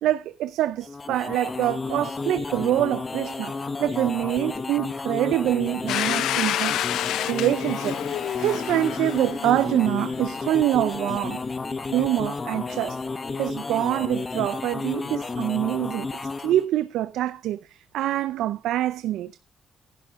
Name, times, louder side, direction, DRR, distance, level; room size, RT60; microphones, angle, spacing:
voice 1, 0.0-3.5 3.8-6.8 7.3-8.0 8.4-11.4 11.9-13.0 13.4-16.1 16.4-17.6 17.9-19.4, right 13 dB, 85° right, 0.6 m, -25 dB
sound 1, 0.8-16.6, left 3 dB, 30° left, 1.0 m, -32 dB
Domestic sounds home sounds, 5.9-10.5, left 12 dB, 80° left, 0.5 m, -29 dB
11.5 x 11.0 x 3.7 m
cardioid pair, 90°, 0 cm